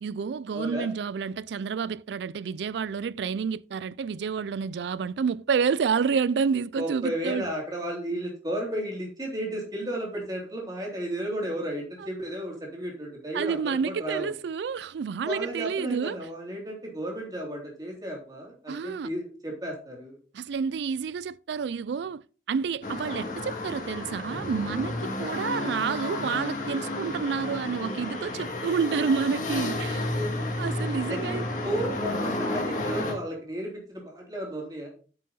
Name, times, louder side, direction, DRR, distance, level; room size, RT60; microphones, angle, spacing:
voice 1, 0.0-7.4 12.0-12.1 13.3-16.2 18.7-19.1 20.3-22.2 22.5-30.1 30.6-31.4, right 6 dB, 80° right, 0.4 m, -29 dB
voice 2, 0.5-0.9 6.8-14.3 15.2-20.2 30.1-30.3 31.1-34.9, right 1 dB, 20° right, 3.2 m, -33 dB
sound 1, 22.8-33.1, left 2 dB, 45° left, 2.2 m, -31 dB
8.9 x 6.6 x 4.1 m
head